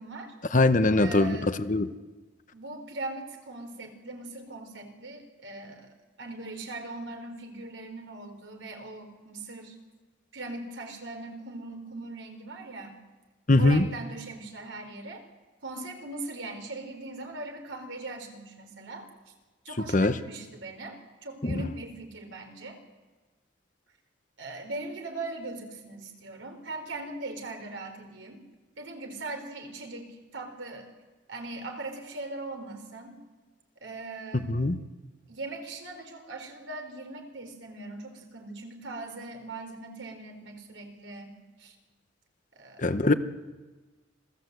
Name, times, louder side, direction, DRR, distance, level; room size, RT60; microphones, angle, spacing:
voice 1, 0.0-0.3 0.9-1.6 2.5-9.8 10.3-13.0 13.6-15.2 15.6-19.1 19.6-22.8 24.4-28.4 28.8-30.9 31.3-33.2 33.8-34.5 35.3-41.8 42.5-43.2, right 2 dB, 80° right, 5 dB, 4.0 m, -40 dB
voice 2, 0.5-1.4 1.7-1.9 13.5-13.8 19.9-20.1 21.4-21.5 34.3-34.8 42.8-43.1, left 2 dB, 40° left, 11 dB, 1.0 m, -21 dB
26.5 x 17.5 x 8.1 m, 1.2 s
head